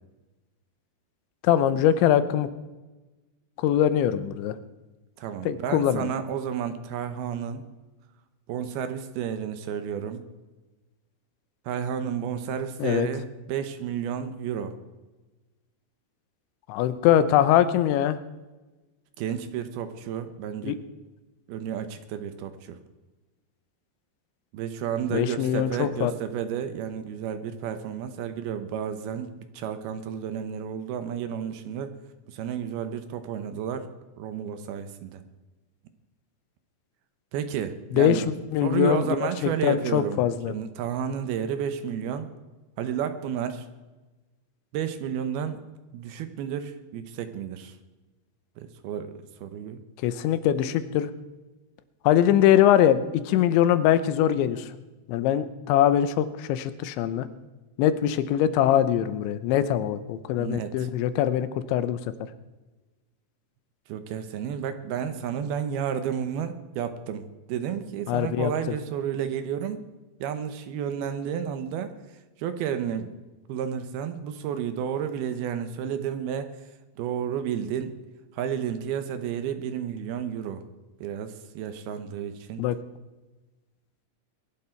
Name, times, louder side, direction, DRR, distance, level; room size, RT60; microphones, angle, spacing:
voice 1, 1.4-2.5 3.6-4.6 5.5-6.1 12.8-13.1 16.7-18.2 20.6-20.8 25.1-26.1 37.9-38.2 38.5-39.2 39.4-40.5 50.0-51.1 52.0-54.7 55.1-57.3 57.8-62.0 68.1-68.8 82.6-82.8, left 11 dB, 90° left, 13 dB, 3.2 m, -22 dB
voice 2, 5.2-7.7 8.5-10.3 11.7-14.8 19.2-20.8 21.5-22.8 24.5-31.9 32.3-33.9 34.2-35.2 37.3-38.3 38.6-42.3 42.8-43.7 44.7-45.6 45.9-47.8 48.6-49.1 49.4-49.8 60.4-60.9 63.9-69.8 70.2-71.9 72.4-73.2 73.5-76.5 77.0-77.9 78.3-80.6 81.0-82.6, right 8 dB, 75° right, 9 dB, 2.6 m, -31 dB
22.5 x 11.5 x 4.5 m, 1.2 s
omnidirectional pair, 5.1 m